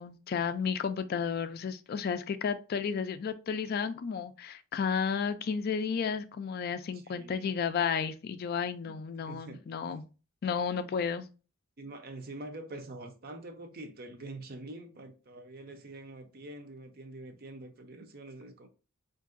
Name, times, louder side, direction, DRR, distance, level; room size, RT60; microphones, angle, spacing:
voice 1, 0.0-10.0 10.4-11.3, left 6 dB, 45° left, 0.3 m, -32 dB
voice 2, 6.9-7.5 8.9-9.0 9.3-9.9 11.8-18.7, right 2 dB, 45° right, 0.6 m, -45 dB
4.6 x 2.6 x 2.4 m
head